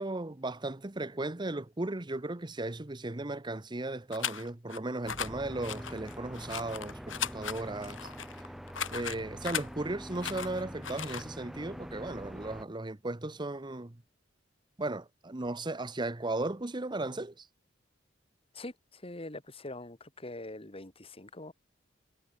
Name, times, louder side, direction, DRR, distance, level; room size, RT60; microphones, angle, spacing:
voice 1, 0.0-8.1 8.9-14.0 14.8-17.5, right 2 dB, 25° right, 0.9 m, -36 dB
sound 1, 4.1-4.8 5.0-5.3 5.6-9.7 10.1-11.3, left 8 dB, 90° left, 4.5 m, -37 dB
sound 2, 5.0-12.6, equal, ahead, 4.3 m, -45 dB
voice 2, 18.5-21.5, left 2 dB, 30° left, 2.4 m, -43 dB
head